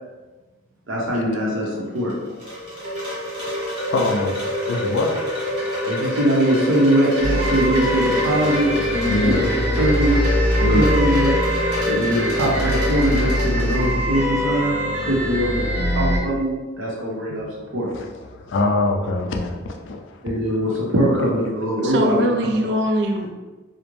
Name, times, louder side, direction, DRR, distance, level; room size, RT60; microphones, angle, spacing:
voice 1, 0.9-2.1 5.9-10.1 10.7-11.3 11.9-17.4 17.7-17.9 20.2-22.2, equal, 70° right, -4 dB, 0.7 m, -22 dB
Wind chime, 2.0-14.2, left 1 dB, 30° right, 0.9 m, -26 dB
voice 2, 3.9-5.2 9.1-9.4 10.6-10.9 17.9-20.2, left 2 dB, 60° left, 2 dB, 0.3 m, -24 dB
sound 1, 7.2-16.2, equal, 5° left, 0.8 m, -23 dB
voice 3, 21.8-23.3, equal, 55° right, 3 dB, 0.3 m, -22 dB
2.5 x 2.1 x 3.0 m, 1.2 s
head